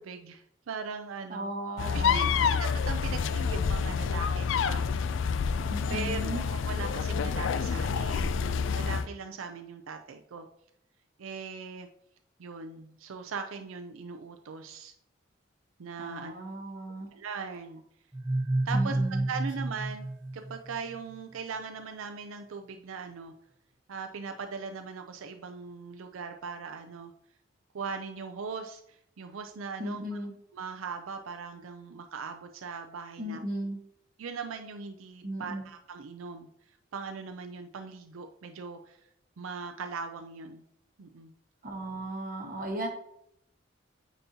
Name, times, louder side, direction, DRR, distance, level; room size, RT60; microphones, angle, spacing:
voice 1, 0.0-1.5 1.9-4.8 5.4-5.6 5.9-10.5 11.2-11.9 12.4-14.9 15.8-16.3 17.1-17.8 18.7-19.0 19.3-20.1 20.3-23.3 23.9-27.1 27.7-30.2 30.5-33.4 34.2-36.5 36.9-39.0 39.4-40.6 41.0-41.3, right 5 dB, 90° right, 5 dB, 0.5 m, -40 dB
voice 2, 1.3-2.5 5.7-6.5 16.0-17.1 18.7-19.3 29.8-30.3 33.2-33.8 35.2-35.6 41.6-42.9, right 1 dB, 45° right, 1 dB, 1.3 m, -36 dB
sound 1, 1.8-9.1, left 6 dB, 70° left, 0.3 m, -28 dB
sound 2, 18.1-21.0, right 2 dB, 10° right, 0.8 m, -30 dB
8.9 x 4.1 x 2.8 m, 0.73 s
head